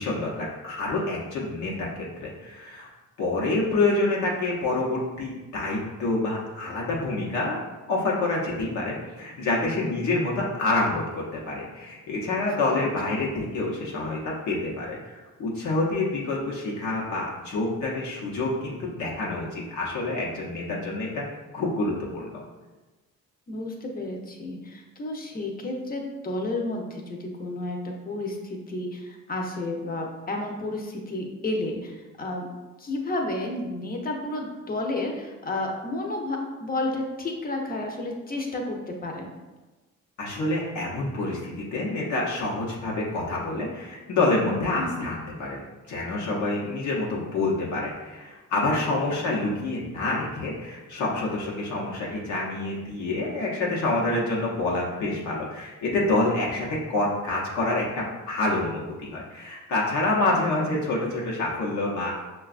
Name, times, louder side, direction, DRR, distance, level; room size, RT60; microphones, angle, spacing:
voice 1, 0.0-1.9 2.2-2.9 3.2-7.6 7.9-15.1 15.4-21.2 21.5-22.4 40.2-62.1, left 2 dB, 75° left, -4 dB, 0.8 m, -27 dB
voice 2, 9.8-10.1 12.3-12.5 12.7-12.8 23.5-32.5 32.8-39.3 44.8-45.0 49.2-49.3 60.6-60.8, left 2 dB, 30° left, 1 dB, 0.7 m, -31 dB
5.6 x 2.3 x 2.4 m, 1.2 s
cardioid pair, 90°, 30 cm